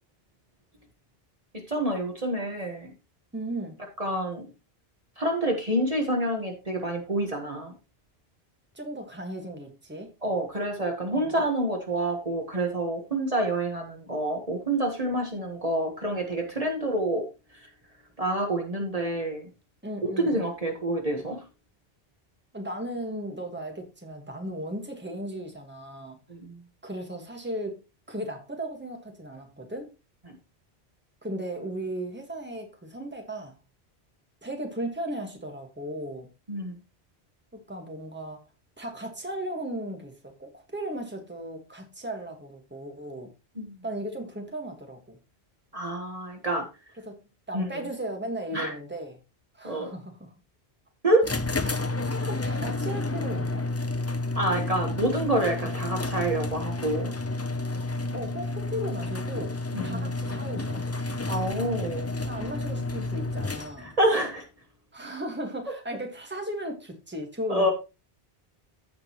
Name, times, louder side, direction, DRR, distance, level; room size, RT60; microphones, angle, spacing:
voice 1, 1.7-2.9 4.0-4.5 5.2-7.7 10.2-17.2 18.2-19.5 20.0-21.4 26.3-26.4 36.5-36.7 43.6-43.7 45.7-46.7 47.5-47.7 48.5-48.7 49.6-49.9 51.0-51.3 54.3-57.1 59.7-60.1 61.3-62.1 63.8-64.4 67.5-67.7, right 1 dB, 35° right, 2 dB, 1.4 m, -27 dB
voice 2, 3.3-3.8 8.7-10.1 11.1-11.3 19.8-20.4 22.5-26.2 26.8-27.8 28.1-29.9 31.2-33.5 34.4-36.3 37.5-38.4 38.8-43.3 43.8-45.2 47.0-47.2 47.5-49.2 49.5-50.3 51.9-53.7 55.6-55.7 58.1-60.8 62.3-63.9 64.9-67.7, right 1 dB, 10° right, 3 dB, 1.6 m, -36 dB
sound 1, 51.2-64.0, left 2 dB, 20° left, 0.4 m, -30 dB
15.0 x 5.1 x 3.0 m, 0.28 s
omnidirectional pair, 1.1 m